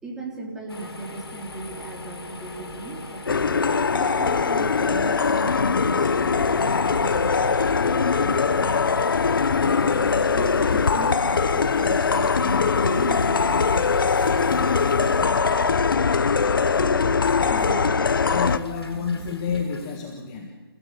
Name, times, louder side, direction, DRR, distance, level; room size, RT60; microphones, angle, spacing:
voice 1, 0.0-9.0 9.5-15.3 16.7-18.0 18.9-19.3, right 3 dB, 5° right, -3 dB, 3.4 m, -37 dB
sound 1, 0.7-20.0, left 2 dB, 75° left, 4.7 m, -41 dB
sound 2, 1.2-19.3, right 3 dB, 40° right, 5.2 m, -45 dB
sound 3, 3.3-18.6, left 5 dB, 60° left, 1.2 m, -21 dB
voice 2, 18.2-20.5, left 6 dB, 15° left, 2 dB, 1.5 m, -29 dB
29.0 x 16.5 x 8.4 m, 1.4 s
hypercardioid pair, 165°, 13 cm